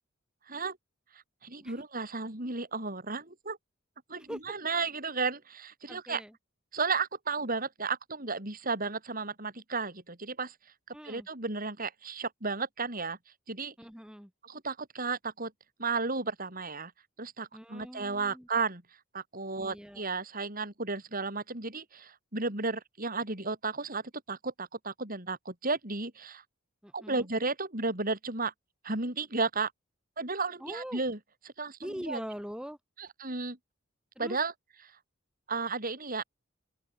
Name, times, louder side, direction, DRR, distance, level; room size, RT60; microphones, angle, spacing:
voice 1, 1.1-3.6 4.1-6.2 6.7-10.5 11.0-13.2 13.5-13.7 14.4-15.5 15.8-16.9 17.2-18.8 19.1-24.0 24.3-26.4 26.9-28.5 28.8-29.7 30.2-31.2 31.4-32.2 33.0-33.6 34.2-34.5 35.5-36.2, right 4 dB, 45° right, 6.5 m, -33 dB
voice 2, 5.9-6.3 10.9-11.3 13.8-14.3 17.5-18.5 19.6-20.0 26.8-27.2 30.6-31.0 31.8-32.8 34.2-34.4, equal, 5° right, 8.0 m, -42 dB
open air
head